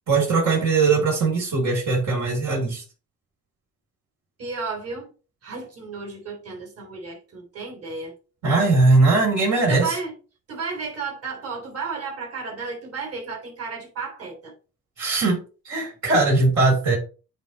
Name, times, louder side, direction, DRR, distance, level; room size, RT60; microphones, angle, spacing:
voice 1, 0.1-2.8 8.4-9.9 15.0-17.0, right 3 dB, 70° right, 3.4 m, -20 dB
voice 2, 4.4-5.1 5.4-8.1 9.5-10.2 10.5-14.5, right 4 dB, 50° right, 3.6 m, -33 dB
8.9 x 3.5 x 4.2 m
cardioid pair, 90°, 30 cm